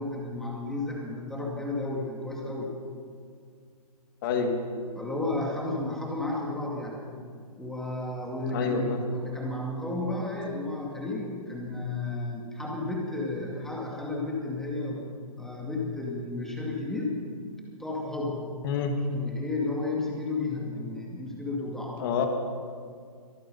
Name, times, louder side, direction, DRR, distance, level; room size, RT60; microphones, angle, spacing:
voice 1, 0.0-2.7 5.0-7.0 7.6-15.0 15.4-17.2 17.8-18.5 19.1-22.0, left 2 dB, ahead, -2 dB, 2.3 m, -32 dB
voice 2, 4.2-4.6 8.5-9.0 18.6-19.0 22.0-22.3, left 5 dB, 35° left, 5 dB, 1.9 m, -27 dB
24.5 x 9.2 x 5.6 m, 2.1 s
hypercardioid pair, 145°, 19 cm